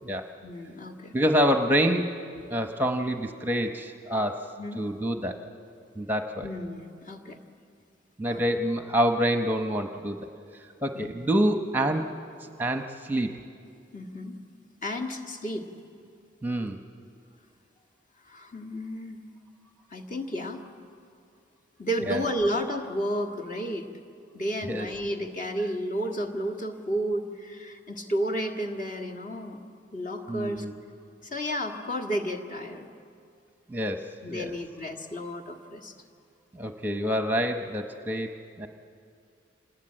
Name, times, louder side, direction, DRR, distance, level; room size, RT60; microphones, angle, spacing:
voice 1, 0.4-1.2 4.6-4.8 6.4-7.4 8.3-8.5 10.9-11.1 13.9-14.4 14.8-15.7 18.2-19.2 19.9-20.6 21.8-23.9 24.3-29.6 29.9-30.6 31.2-32.9 34.2-35.9, equal, 40° left, 3 dB, 1.8 m, -32 dB
voice 2, 1.1-2.1 2.5-4.4 4.8-5.4 6.0-6.5 8.2-10.3 10.8-12.1 12.6-13.3 16.4-16.8 22.0-22.2 24.7-24.9 30.3-30.7 33.7-34.6 36.5-38.3 38.6-38.7, equal, 10° right, 6 dB, 0.9 m, -27 dB
27.0 x 20.0 x 8.8 m, 2.4 s
head